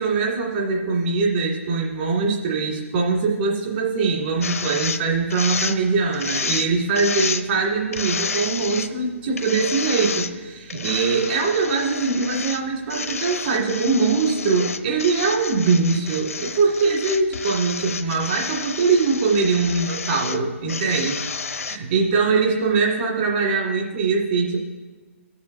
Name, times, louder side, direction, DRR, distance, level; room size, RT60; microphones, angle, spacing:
voice 1, 0.0-21.1 21.6-24.6, right 4 dB, 45° right, -2 dB, 2.0 m, -22 dB
sound 1, 4.4-5.0 5.3-5.8 6.1-6.7 6.9-7.5 7.9-8.9 9.4-10.3 10.7-12.6 12.9-20.4 20.7-21.8, left 5 dB, 90° left, 0.7 m, -30 dB
20.0 x 7.2 x 2.7 m, 1.3 s
hypercardioid pair, 155°, 8 cm